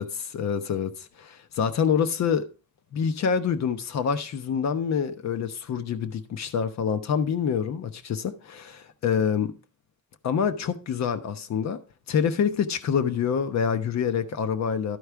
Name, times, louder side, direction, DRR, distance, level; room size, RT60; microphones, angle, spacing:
voice 1, 0.3-2.5 2.9-9.5 10.2-11.8 12.1-15.0, left 7 dB, 65° left, 1.1 m, -26 dB
12.0 x 4.7 x 4.7 m
cardioid pair, 90°, 30 cm